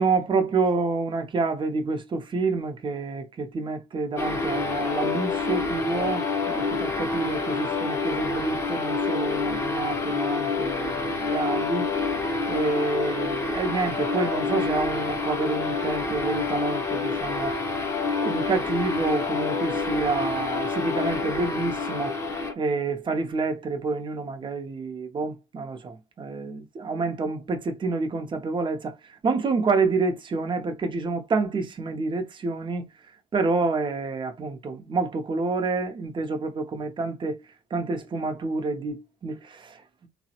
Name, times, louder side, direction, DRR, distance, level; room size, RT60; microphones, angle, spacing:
voice 1, 0.0-11.9 12.5-17.5 18.2-22.1 22.6-28.9 29.2-32.9 33.3-37.4 37.7-39.8, right 3 dB, 30° right, 0.6 m, -28 dB
sound 1, 4.2-22.5, left 4 dB, 15° left, 0.6 m, -27 dB
3.1 x 2.0 x 2.8 m
cardioid pair, 110°, 17 cm